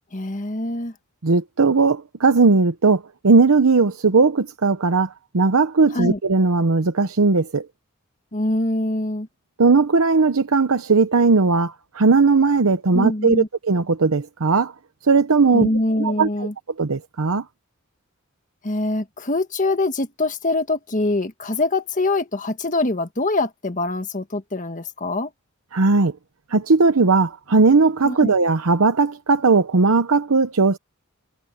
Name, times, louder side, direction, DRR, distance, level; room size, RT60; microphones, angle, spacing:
voice 1, 0.1-0.9 5.9-6.2 8.3-9.3 12.9-13.5 15.5-16.5 18.6-25.3 28.0-28.3, left 2 dB, 35° left, 1.5 m, -24 dB
voice 2, 1.2-7.7 9.6-14.7 15.1-15.7 16.0-16.3 16.8-17.4 25.7-26.1 26.5-30.8, right 4 dB, 75° right, 0.8 m, -18 dB
head